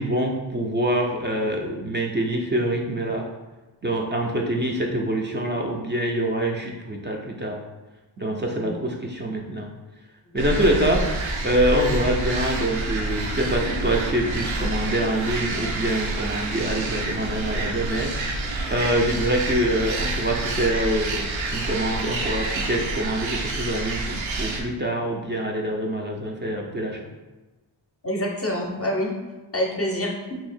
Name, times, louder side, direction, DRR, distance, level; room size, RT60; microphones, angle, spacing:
voice 1, 0.0-3.3 3.8-7.6 8.2-9.7 10.3-11.1 11.4-27.1, right 1 dB, 25° right, 0 dB, 0.4 m, -25 dB
voice 2, 10.3-10.8 28.0-29.1 29.5-30.4, equal, 30° left, -1 dB, 0.6 m, -27 dB
sound 1, 10.4-24.6, right 2 dB, 75° right, 0.7 m, -28 dB
2.8 x 2.7 x 4.1 m, 1.2 s
wide cardioid pair, 120°, 47 cm